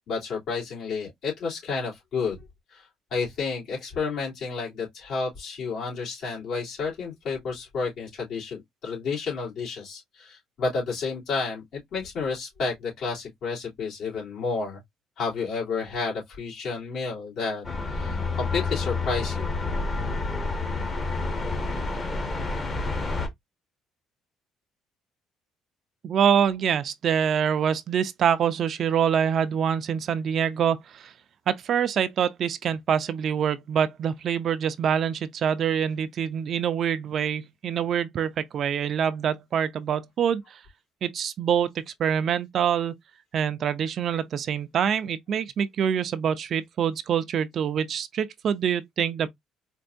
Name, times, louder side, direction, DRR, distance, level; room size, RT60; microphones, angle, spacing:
voice 1, 0.1-2.4 2.7-14.8 15.2-19.5, left 4 dB, 65° left, 3.0 m, -31 dB
sound 1, 17.6-23.3, left 3 dB, 30° left, 1.1 m, -29 dB
voice 2, 26.0-31.1 31.5-40.6 41.0-42.9 43.3-49.3, right 8 dB, 55° right, 0.5 m, -25 dB
4.4 x 2.6 x 2.5 m
cardioid pair, 105°, 0 cm